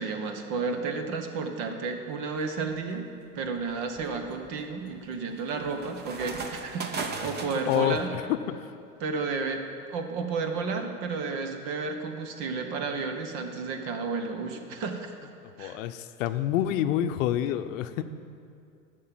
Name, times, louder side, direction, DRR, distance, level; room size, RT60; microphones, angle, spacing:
voice 1, 0.0-3.1 3.3-8.1 9.0-9.6 9.9-15.1 15.6-15.8, right 4 dB, 50° right, 6 dB, 1.5 m, -32 dB
sound 1, 2.4-2.8 3.4-8.0, right 4 dB, 25° right, 1.0 m, -38 dB
voice 2, 7.7-8.7 15.6-18.0, left 11 dB, 60° left, 10 dB, 0.7 m, -28 dB
11.0 x 6.7 x 7.7 m, 2.5 s
hypercardioid pair, 105°, 44 cm